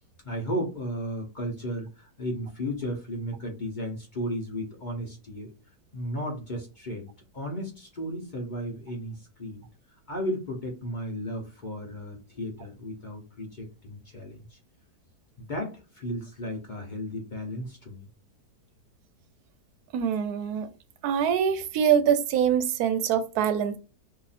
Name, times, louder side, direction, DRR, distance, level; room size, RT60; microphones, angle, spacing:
voice 1, 0.2-5.5 5.9-9.6 10.1-14.6 15.4-18.1, equal, 40° left, 0.7 m, -34 dB
voice 2, 19.9-20.7 21.0-23.8, right 8 dB, 75° right, 1.0 m, -24 dB
2.8 x 2.6 x 4.0 m
omnidirectional pair, 1.8 m